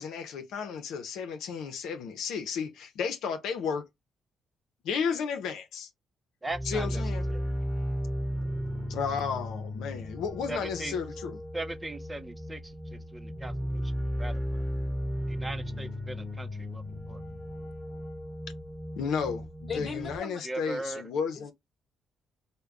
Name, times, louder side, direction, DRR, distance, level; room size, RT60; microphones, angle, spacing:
voice 1, 0.0-3.9 4.8-5.9 6.6-7.2 8.9-11.4 19.0-21.5, left 6 dB, 85° left, 0.6 m, -33 dB
voice 2, 6.4-7.0 7.3-7.4 10.5-11.0 11.5-13.9 14.2-14.6 15.3-17.2 20.4-21.0, right 2 dB, 15° right, 0.5 m, -39 dB
sound 1, 6.5-20.2, equal, 15° left, 1.0 m, -35 dB
voice 3, 19.7-20.4 21.3-21.5, left 5 dB, 40° left, 1.0 m, -38 dB
3.3 x 2.2 x 3.6 m
cardioid pair, 90°, 0 cm